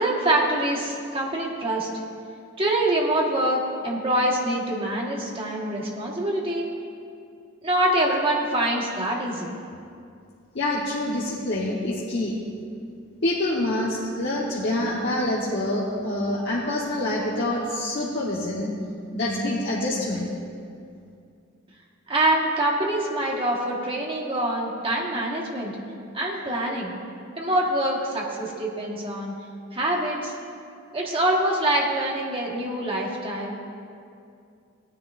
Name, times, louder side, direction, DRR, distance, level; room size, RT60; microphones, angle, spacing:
voice 1, 0.0-1.9 2.6-6.7 7.6-9.5 22.1-25.7 26.1-26.9 27.4-29.3 29.7-30.3 30.9-33.6, right 1 dB, 25° right, -2 dB, 1.5 m, -25 dB
voice 2, 10.5-12.4 13.2-18.7 19.1-20.3, left 1 dB, 60° left, -6 dB, 1.2 m, -26 dB
17.5 x 9.7 x 2.6 m, 2.4 s
head